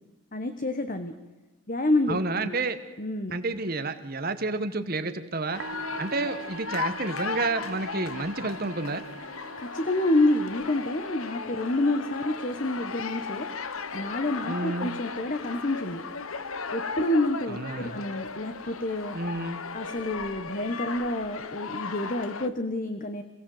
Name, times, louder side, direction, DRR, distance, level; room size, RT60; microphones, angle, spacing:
voice 1, 0.3-1.1 1.7-2.6 3.0-3.3 9.6-13.5 13.9-16.0 16.7-19.1 19.7-23.2, left 1 dB, 40° left, 8 dB, 1.2 m, -28 dB
voice 2, 2.1-2.8 3.3-5.6 6.0-9.0 14.5-14.9 17.5-18.0 19.1-19.6, right 3 dB, 45° right, 9 dB, 1.3 m, -30 dB
Musical instrument, 5.4-20.2, right 3 dB, 70° right, 1.2 m, -47 dB
sound 1, 5.5-22.5, left 5 dB, 80° left, 1.3 m, -36 dB
27.5 x 17.0 x 7.9 m, 1.2 s
head